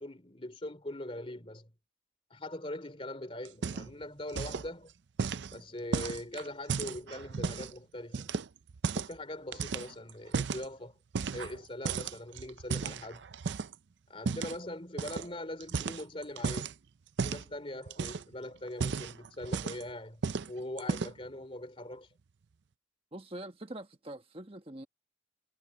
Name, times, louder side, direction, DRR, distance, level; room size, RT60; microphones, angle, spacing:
voice 1, 0.0-1.7 2.3-4.9 5.5-8.3 8.9-11.0 11.3-13.3 14.1-16.7 17.2-20.2 20.5-22.1, left 1 dB, 30° left, 3.0 m, -42 dB
sound 1, 3.4-4.0 4.3-4.7 5.2-7.7 8.1-9.2 9.5-10.7 11.1-11.6 11.8-13.7 14.2-14.6 15.0-15.3 15.6-16.7 17.2-17.5 17.9-18.3 18.7-19.9 20.2-20.5 20.8-21.3, right 5 dB, 65° right, 0.5 m, -34 dB
voice 2, 23.1-24.9, right 1 dB, 30° right, 1.3 m, -44 dB
head